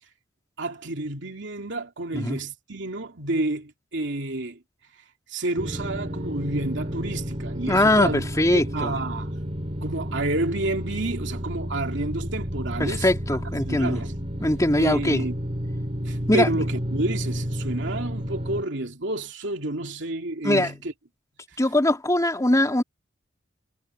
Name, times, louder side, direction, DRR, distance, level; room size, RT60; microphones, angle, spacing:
voice 1, 0.6-4.6 5.3-8.3 8.5-9.3 9.8-13.1 13.7-14.1 14.8-15.3 16.0-20.9, right 2 dB, 65° right, 2.8 m, -29 dB
sound 1, 5.6-18.6, equal, 30° right, 6.7 m, -31 dB
voice 2, 7.7-8.9 12.8-14.0 14.4-15.2 16.3-16.6 20.4-20.7 21.6-22.8, left 1 dB, 15° left, 3.4 m, -21 dB
head